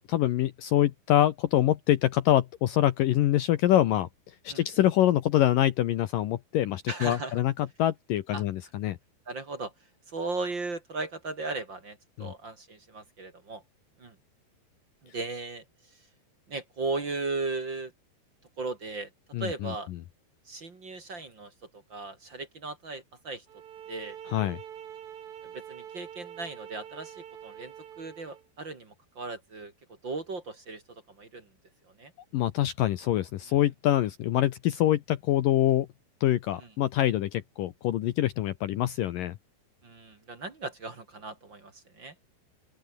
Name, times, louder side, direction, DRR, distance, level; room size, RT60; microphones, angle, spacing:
voice 1, 0.0-9.0 12.2-12.3 19.3-20.0 24.3-24.6 32.3-35.9 36.2-39.4, left 13 dB, 75° left, 2.1 m, -25 dB
voice 2, 6.9-7.3 8.3-8.4 9.3-9.7 10.1-13.6 14.0-14.1 15.0-15.6 16.5-17.9 18.6-19.1 19.4-19.9 20.5-21.5 21.9-23.4 23.9-24.2 25.5-29.7 30.0-31.5 32.0-32.1 39.8-42.1, right 3 dB, 35° right, 2.4 m, -36 dB
sound 1, 23.5-28.5, right 9 dB, 60° right, 3.7 m, -45 dB
open air
omnidirectional pair, 5.1 m